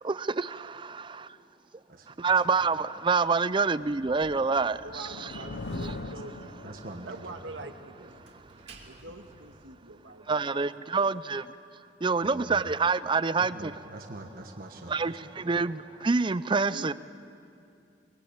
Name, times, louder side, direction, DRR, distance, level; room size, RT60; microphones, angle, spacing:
voice 1, 0.0-1.3 2.1-5.3 5.8-5.9 10.3-11.5 12.0-13.7 14.9-16.9, right 4 dB, 25° right, 0.5 m, -27 dB
voice 2, 1.9-2.4 5.3-6.1 6.6-7.3 7.6-7.7 8.0-8.1 12.2-12.7 13.4-15.2 15.4-15.6, right 1 dB, 50° right, 1.5 m, -44 dB
Slam, 3.5-9.7, right 2 dB, 65° right, 3.0 m, -54 dB
sound 1, 4.6-7.2, left 3 dB, 75° left, 0.7 m, -40 dB
voice 3, 4.8-6.7 7.1-8.3 8.9-11.2 16.7-16.9, right 2 dB, 90° right, 1.7 m, -45 dB
24.0 x 21.5 x 8.8 m
head